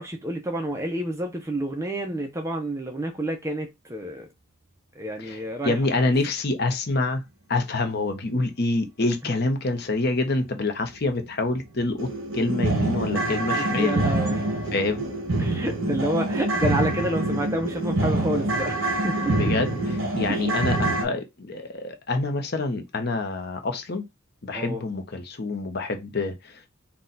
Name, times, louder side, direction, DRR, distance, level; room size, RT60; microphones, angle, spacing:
voice 1, 0.0-4.3 4.9-6.1 9.2-9.3 13.5-14.4 15.4-19.5 20.3-20.5 24.5-24.8, right 1 dB, 15° right, 0.6 m, -29 dB
voice 2, 5.6-7.2 7.5-14.0 14.7-15.1 19.2-19.8 20.2-24.0 24.4-26.6, left 2 dB, 45° left, 0.8 m, -26 dB
sound 1, 11.0-11.2 11.6-11.7 12.0-21.0, right 2 dB, 60° right, 1.2 m, -25 dB
4.1 x 2.4 x 3.9 m
head